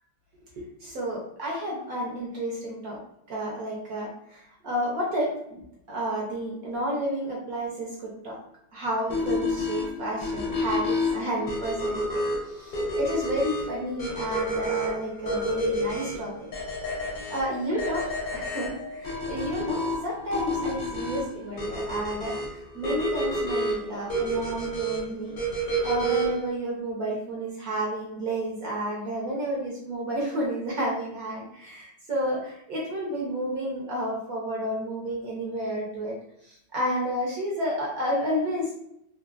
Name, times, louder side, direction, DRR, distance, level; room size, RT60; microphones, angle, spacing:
voice 1, 0.5-3.0 3.3-5.6 5.9-7.9 8.2-8.4 8.7-12.0 12.5-16.5 17.3-18.0 18.3-22.4 22.7-25.3 25.8-36.1 36.4-38.7, equal, 60° right, -3 dB, 1.0 m, -31 dB
sound 1, 9.1-26.5, equal, 55° left, 0.6 m, -30 dB
3.3 x 2.8 x 2.4 m, 0.77 s
omnidirectional pair, 2.1 m